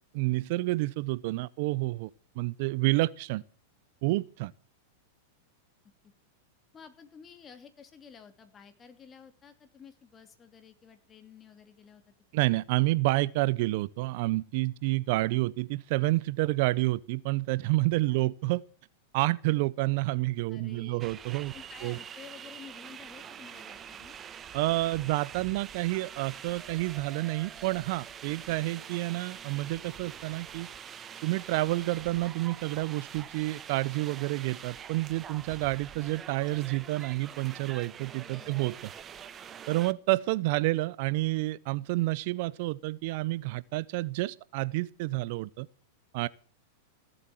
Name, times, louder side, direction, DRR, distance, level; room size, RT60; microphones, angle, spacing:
voice 1, 0.1-2.1 2.4-3.4 4.0-4.5 12.3-18.6 19.1-21.5 21.8-22.0 24.5-30.7 31.2-38.8 39.7-45.7 46.1-46.3, right 20 dB, 55° right, 0.6 m, -29 dB
voice 2, 6.7-12.1 18.1-18.2 20.5-21.0 21.5-24.2 38.3-38.6, left 7 dB, 25° left, 2.7 m, -52 dB
sound 1, 21.0-39.9, right 8 dB, 25° right, 1.0 m, -45 dB
17.0 x 8.0 x 7.6 m
hypercardioid pair, 110°, 0 cm